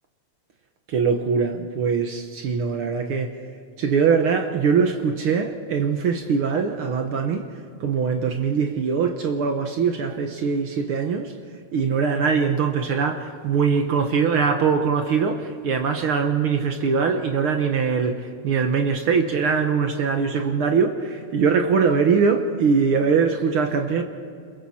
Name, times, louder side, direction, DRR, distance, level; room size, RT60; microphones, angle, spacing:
voice 1, 0.9-3.3 3.8-7.5 7.8-11.3 11.7-24.0, right 5 dB, 70° right, 1.2 m, -22 dB
28.0 x 22.5 x 4.3 m
omnidirectional pair, 3.9 m